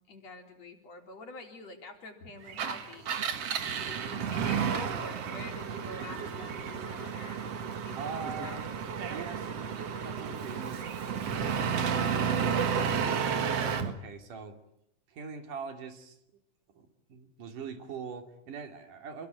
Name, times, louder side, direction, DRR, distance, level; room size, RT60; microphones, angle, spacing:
voice 1, 0.1-3.1 3.5-3.8 4.1-7.4 7.9-8.6, left 3 dB, 55° left, 3 dB, 4.7 m, -47 dB
Engine, 2.5-13.9, right 7 dB, 55° right, 2.5 m, -32 dB
voice 2, 7.9-8.7 9.1-11.2 11.5-14.6 15.1-16.2 16.7-19.3, right 5 dB, 80° right, 6 dB, 4.3 m, -42 dB
27.5 x 23.0 x 9.2 m, 0.78 s
omnidirectional pair, 3.6 m